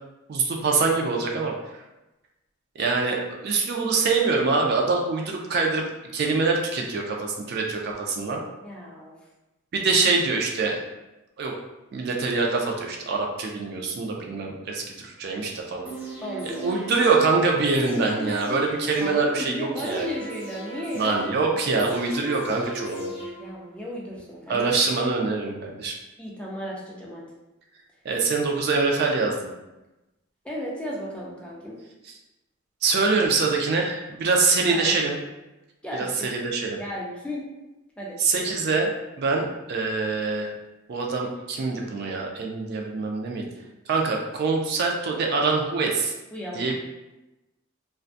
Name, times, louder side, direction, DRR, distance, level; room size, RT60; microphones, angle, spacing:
voice 1, 0.3-1.8 2.8-5.8 6.1-8.4 9.7-10.8 11.4-11.5 11.9-15.9 16.4-20.1 20.9-23.1 24.5-26.0 28.0-29.5 32.8-35.2 35.9-36.8 38.2-38.9 39.2-40.5 40.9-43.5 43.9-46.1 46.5-46.7, right 4 dB, 55° right, 1 dB, 0.3 m, -24 dB
voice 2, 8.6-9.1 16.2-16.7 19.0-21.3 23.4-24.8 26.2-27.3 30.4-31.8 33.2-33.3 34.7-34.9 35.8-36.3 36.8-37.5 38.0-38.2 46.3-46.7, equal, 5° left, -5 dB, 0.4 m, -34 dB
sound 1, 15.8-23.8 24.2-24.3, right 1 dB, 10° right, 0.9 m, -38 dB
2.6 x 2.2 x 2.4 m, 1.0 s
head